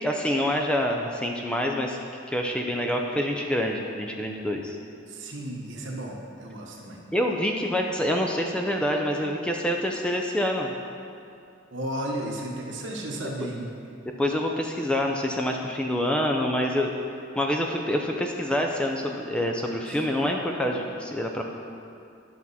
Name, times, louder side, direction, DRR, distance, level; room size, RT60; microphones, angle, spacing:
voice 1, 0.0-2.0 2.3-4.8 7.1-10.7 14.2-16.9 17.4-21.4, equal, 5° left, 1 dB, 0.4 m, -26 dB
voice 2, 5.1-7.0 11.7-13.7 19.9-20.0, right 1 dB, 70° right, 0 dB, 1.2 m, -34 dB
10.5 x 5.9 x 4.1 m, 2.5 s
head